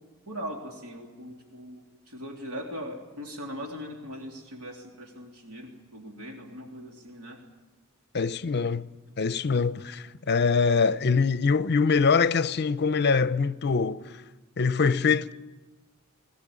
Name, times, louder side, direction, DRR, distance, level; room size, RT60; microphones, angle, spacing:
voice 1, 0.3-7.4, equal, 85° right, 3.2 m, -40 dB
voice 2, 8.1-8.9 9.2-14.1 14.6-15.3, left 5 dB, 50° left, 0.6 m, -24 dB
20.0 x 17.5 x 10.0 m
head